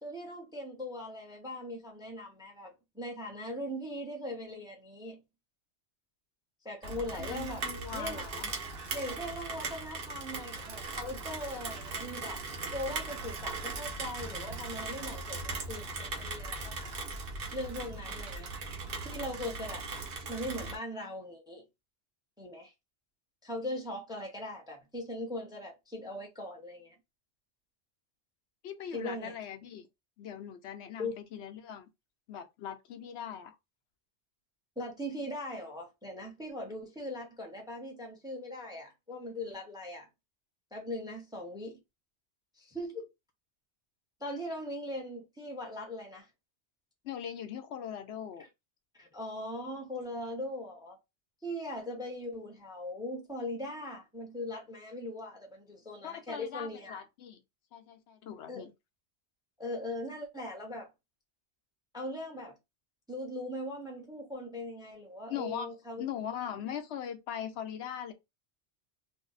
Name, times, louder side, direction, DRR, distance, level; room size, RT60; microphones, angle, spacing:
voice 1, 0.0-5.2 6.6-7.6 7.9-8.2 8.9-12.4 12.7-16.9 17.5-18.5 19.0-21.6 22.4-22.7 23.4-26.9 28.9-29.4 31.0-31.2 34.8-40.1 40.7-41.8 42.6-43.1 44.2-46.3 49.0-51.0 51.4-57.0 58.5-58.6 59.6-60.9 61.9-62.6 63.1-66.0, left 1 dB, 5° right, 0.6 m, -40 dB
Rain, 6.8-20.8, right 3 dB, 60° right, 0.8 m, -39 dB
voice 2, 7.2-8.5 28.6-29.9 30.2-31.9 32.3-33.6 47.0-48.5 56.0-57.4 57.7-58.7 65.3-65.7 66.0-68.1, left 9 dB, 80° left, 0.9 m, -40 dB
2.6 x 2.1 x 3.8 m
omnidirectional pair, 1.1 m